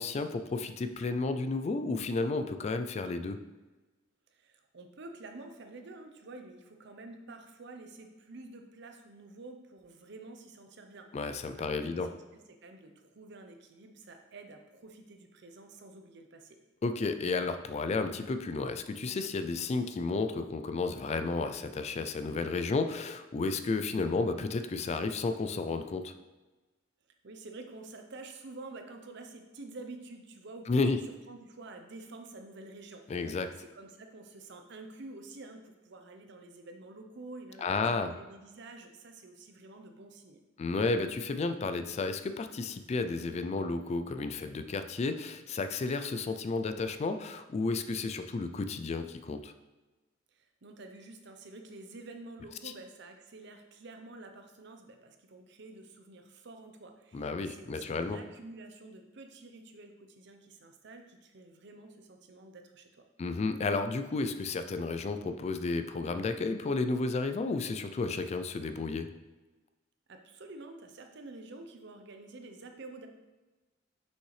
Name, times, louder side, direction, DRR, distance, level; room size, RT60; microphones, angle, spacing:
voice 1, 0.0-3.4 11.1-12.1 16.8-26.1 30.7-31.0 33.1-33.5 37.6-38.1 40.6-49.5 57.1-58.2 63.2-69.1, left 3 dB, 35° left, 9 dB, 0.3 m, -32 dB
voice 2, 4.3-16.6 27.2-40.4 50.3-63.0 70.1-73.1, right 2 dB, 65° right, 5 dB, 0.7 m, -49 dB
6.4 x 5.4 x 3.2 m, 1.2 s
head